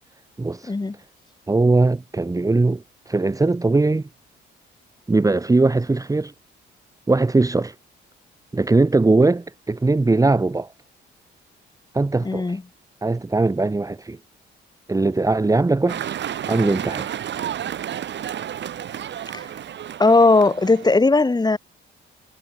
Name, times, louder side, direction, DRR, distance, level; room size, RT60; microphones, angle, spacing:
voice 1, 0.4-0.7 1.5-4.0 5.1-6.3 7.1-7.7 8.5-10.7 11.9-12.6 13.0-14.2 14.9-16.1 16.4-17.1, right 3 dB, 15° right, 1.6 m, -20 dB
voice 2, 12.2-12.6 19.3-19.4 20.0-21.6, left 3 dB, 20° left, 3.1 m, -17 dB
sound 1, 15.9-21.0, right 10 dB, 65° right, 3.0 m, -31 dB
cardioid pair, 90°, 20 cm